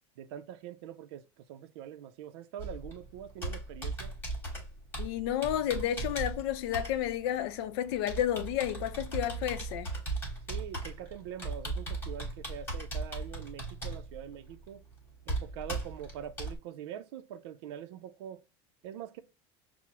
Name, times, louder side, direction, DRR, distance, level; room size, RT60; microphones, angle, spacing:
voice 1, 0.2-1.2 1.5-4.1 10.5-14.8 15.3-18.4 18.8-19.2, right 10 dB, 80° right, 0.5 m, -44 dB
Computer keyboard, 2.6-16.6, right 2 dB, 15° left, 1.2 m, -38 dB
voice 2, 5.0-9.9, left 11 dB, 70° left, 0.5 m, -31 dB
6.0 x 2.0 x 2.8 m
cardioid pair, 160°, 14 cm